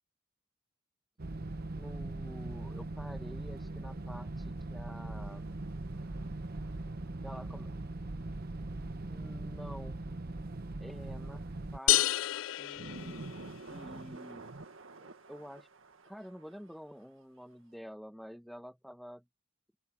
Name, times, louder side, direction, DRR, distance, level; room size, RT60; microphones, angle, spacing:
sound 1, 1.2-11.8, right 2 dB, 50° right, 0.9 m, -40 dB
voice 1, 1.8-5.5 7.2-7.7 9.0-10.0 10.8-11.4 11.7-13.2 13.6-14.5 15.0-15.7 16.0-19.2, equal, ahead, 1.8 m, -49 dB
sound 2, 5.0-7.4 7.8-7.9 10.4-16.7 17.0-17.1, right 2 dB, 80° right, 1.8 m, -50 dB
sound 3, 11.9-13.7, left 16 dB, 70° left, 0.4 m, -30 dB
open air
head